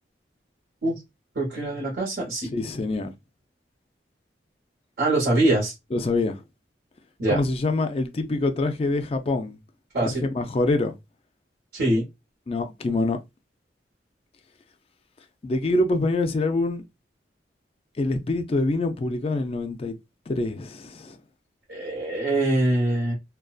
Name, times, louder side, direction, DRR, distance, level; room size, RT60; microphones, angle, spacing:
voice 1, 1.3-2.5 5.0-5.7 7.2-7.4 9.9-10.3 11.7-12.1 21.7-23.1, right 1 dB, 65° right, 1.1 m, -23 dB
voice 2, 2.5-3.1 5.9-6.4 7.3-9.6 10.0-10.9 12.5-13.2 15.4-16.8 18.0-20.0 20.3-21.2, left 2 dB, 30° left, 0.3 m, -25 dB
2.5 x 2.2 x 2.3 m
head